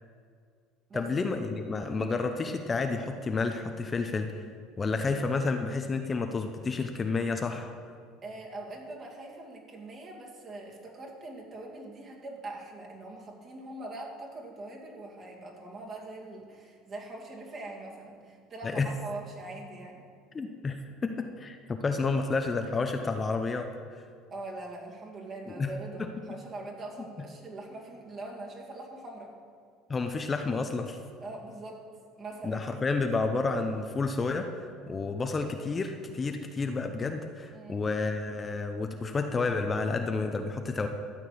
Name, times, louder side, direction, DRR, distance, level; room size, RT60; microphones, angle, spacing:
voice 1, 0.9-4.4 4.8-7.7 18.6-18.9 20.3-23.7 25.5-25.7 26.0-26.1 29.9-31.0 32.4-40.9, left 4 dB, 25° left, 5 dB, 0.7 m, -30 dB
voice 2, 8.2-20.0 24.3-29.3 31.2-31.8 32.2-32.7 37.5-37.8, right 2 dB, 35° right, -1 dB, 2.4 m, -42 dB
13.0 x 4.5 x 8.4 m, 2.1 s
supercardioid pair, 110°, 0 cm